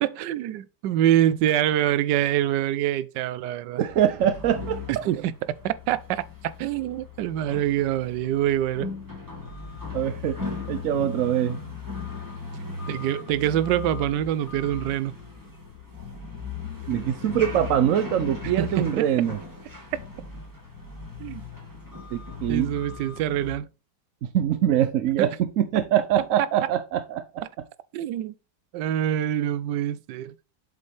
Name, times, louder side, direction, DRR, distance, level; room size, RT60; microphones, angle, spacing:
voice 1, 0.0-3.8 4.9-8.9 12.9-15.1 18.6-19.1 21.2-21.4 22.5-23.7 25.2-25.3 26.4-26.5 27.9-28.3 28.7-30.3, right 12 dB, 90° right, 1.2 m, -25 dB
voice 2, 3.8-4.8 9.9-10.4 10.7-11.6 16.9-19.4 22.1-22.7 24.2-27.4, right 10 dB, 65° right, 0.8 m, -23 dB
sound 1, 4.2-23.6, left 4 dB, 10° right, 2.4 m, -38 dB
7.8 x 5.3 x 3.3 m
omnidirectional pair, 1.8 m